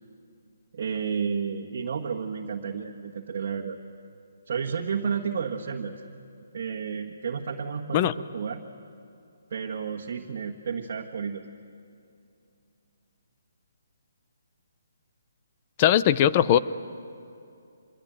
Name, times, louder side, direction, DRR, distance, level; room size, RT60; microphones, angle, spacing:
voice 1, 0.7-3.8 4.5-5.9 6.5-8.6 9.5-11.4, right 6 dB, 50° right, 0 dB, 1.6 m, -31 dB
voice 2, 15.8-16.6, left 11 dB, 25° left, 15 dB, 0.6 m, -19 dB
25.5 x 21.5 x 9.1 m, 2.6 s
hypercardioid pair, 165°, 0 cm